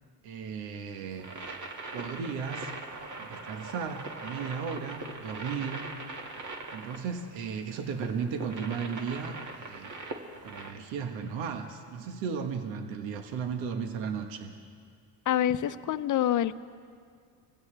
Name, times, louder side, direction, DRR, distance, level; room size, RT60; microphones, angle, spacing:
voice 1, 0.2-1.4 1.9-2.7 3.2-5.9 6.7-10.0 10.4-14.5, right 6 dB, 75° right, 5 dB, 1.4 m, -35 dB
sound 1, 1.2-10.7, right 3 dB, 40° right, 2.1 m, -41 dB
voice 2, 15.3-16.6, left 11 dB, 45° left, 14 dB, 0.7 m, -26 dB
26.0 x 15.5 x 3.4 m, 2.2 s
supercardioid pair, 80°, 45 cm